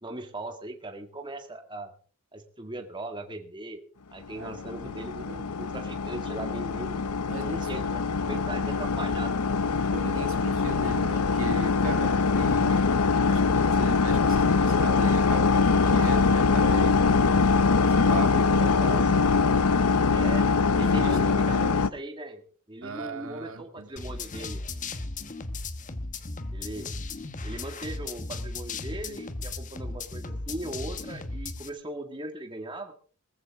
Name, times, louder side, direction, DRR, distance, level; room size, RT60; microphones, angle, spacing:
voice 1, 0.0-1.9 2.3-3.8 4.1-9.4 18.3-19.2 20.0-24.6 26.5-26.9 27.4-32.9, right 1 dB, 20° right, 4 dB, 2.0 m, -39 dB
sound 1, 4.4-21.9, left 4 dB, 85° left, 0.7 m, -23 dB
voice 2, 4.8-5.4 7.3-7.7 9.9-17.0 17.9-19.2 20.8-21.8 22.8-23.9, right 2 dB, 65° right, 7 dB, 2.1 m, -38 dB
sound 2, 24.0-31.7, left 3 dB, 35° left, 1.2 m, -36 dB
19.5 x 15.0 x 3.6 m, 0.41 s
head